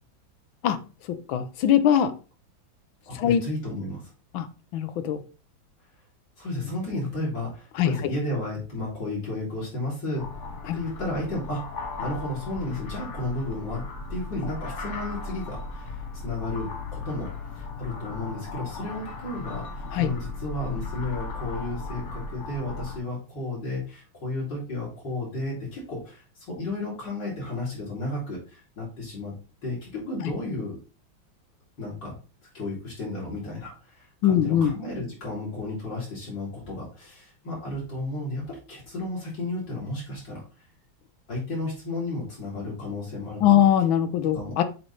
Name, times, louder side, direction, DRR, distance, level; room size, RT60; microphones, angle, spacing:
voice 1, 1.1-2.1 3.1-3.4 4.3-4.5 4.7-5.2 7.7-7.9 10.6-10.8 19.9-20.1 34.2-34.7 43.4-44.6, left 10 dB, 90° left, 11 dB, 1.5 m, -21 dB
voice 2, 3.1-4.1 6.4-10.3 10.7-11.7 12.0-13.8 14.1-17.3 17.5-29.4 29.6-30.8 31.8-32.1 32.5-40.4 41.3-43.6 44.3-44.5, left 2 dB, 65° left, -6 dB, 3.3 m, -33 dB
sound 1, 10.2-23.0, left 3 dB, 45° left, 1.0 m, -36 dB
7.7 x 3.2 x 4.0 m, 0.34 s
omnidirectional pair, 2.1 m